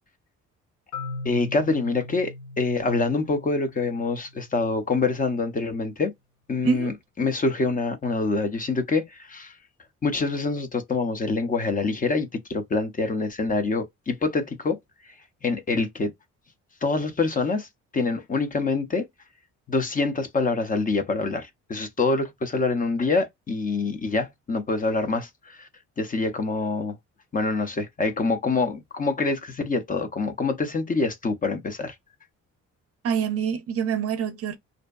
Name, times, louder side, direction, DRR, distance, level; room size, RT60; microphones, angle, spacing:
Marimba xylophone, 0.9-4.8, left 3 dB, 70° left, 0.8 m, -39 dB
voice 1, 1.2-6.1 6.5-9.5 10.0-14.8 15.4-16.1 16.8-17.7 17.9-19.1 19.7-25.7 26.0-27.0 27.3-31.9, left 3 dB, 30° left, 0.5 m, -25 dB
voice 2, 33.0-34.6, right 7 dB, 50° right, 0.5 m, -26 dB
2.5 x 2.1 x 2.3 m
cardioid pair, 90°, 30 cm